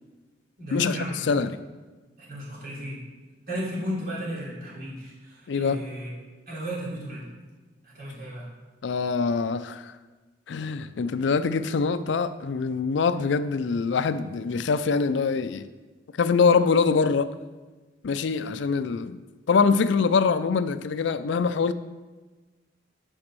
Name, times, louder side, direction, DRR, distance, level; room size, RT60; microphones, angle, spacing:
voice 1, 0.6-1.5 2.2-3.0 3.5-6.1 6.5-7.2 7.8-8.5, equal, 50° right, -7 dB, 3.3 m, -34 dB
voice 2, 1.3-1.6 5.5-5.8 8.8-10.0 10.5-15.7 16.2-17.3 18.0-19.2 19.5-21.7, left 5 dB, 70° left, 13 dB, 0.4 m, -24 dB
8.8 x 5.2 x 6.1 m, 1.3 s
head